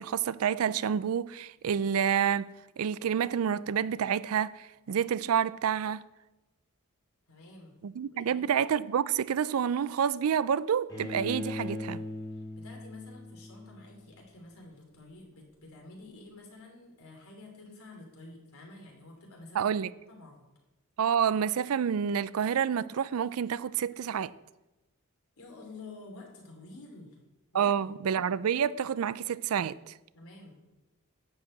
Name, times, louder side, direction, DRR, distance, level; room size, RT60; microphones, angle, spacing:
voice 1, 0.0-6.0 7.8-12.0 19.5-19.9 21.0-24.3 27.5-29.9, right 8 dB, 75° right, 0.4 m, -28 dB
voice 2, 7.3-7.8 8.1-8.5 12.6-20.5 25.4-27.2 27.5-28.0 30.1-30.6, left 2 dB, 80° left, 3.0 m, -50 dB
Bowed string instrument, 10.9-14.0, left 1 dB, 15° left, 2.2 m, -39 dB
11.0 x 4.8 x 7.8 m
head